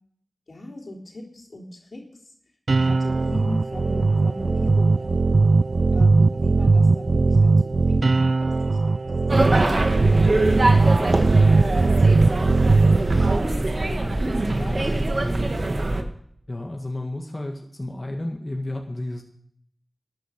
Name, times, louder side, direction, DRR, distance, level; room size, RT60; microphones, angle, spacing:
voice 1, 0.5-2.1 2.8-5.3 5.9-8.8 9.1-12.7 13.0-13.2 13.8-15.8, left 1 dB, 75° left, -2 dB, 3.7 m, -39 dB
sound 1, 2.7-13.4, right 3 dB, 75° right, 0.4 m, -19 dB
sound 2, 9.3-16.0, right 2 dB, 60° right, 1.8 m, -23 dB
voice 2, 16.5-19.2, left 1 dB, 40° left, 1 dB, 1.8 m, -32 dB
13.0 x 9.2 x 6.6 m, 0.65 s
cardioid pair, 40°, 0 cm